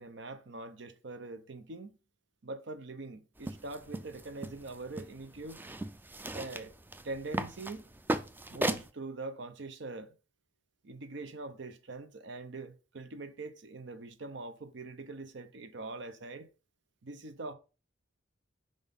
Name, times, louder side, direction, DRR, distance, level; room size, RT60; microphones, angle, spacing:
voice 1, 0.0-1.9 2.4-5.6 6.2-6.7 7.0-7.8 8.5-10.1 10.8-16.5 17.0-17.5, right 2 dB, 65° right, 0.7 m, -43 dB
sound 1, 3.4-8.9, right 1 dB, 10° right, 0.3 m, -37 dB
5.1 x 3.9 x 5.2 m
head